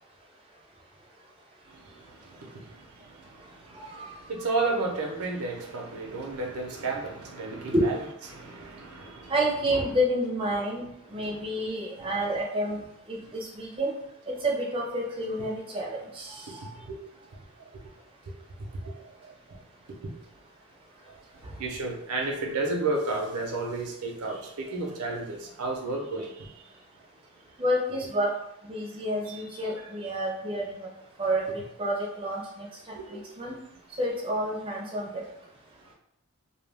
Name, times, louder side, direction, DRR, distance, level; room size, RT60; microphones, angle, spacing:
voice 1, 1.7-8.0 8.3-9.3 11.2-11.5 12.0-12.1 16.6-17.0 17.7-17.8 18.8-19.1 19.5-19.6 20.0-20.1 21.6-26.6 32.9-33.3, right 3 dB, 85° right, 0.6 m, -33 dB
voice 2, 3.7-4.1 7.7-7.9 9.3-10.8 11.1-12.8 13.1-13.9 14.3-16.6 27.6-28.3 28.7-30.8 31.2-32.7 33.1-33.5 34.0-35.1, equal, 25° right, 0.4 m, -29 dB
2.2 x 2.2 x 3.3 m
head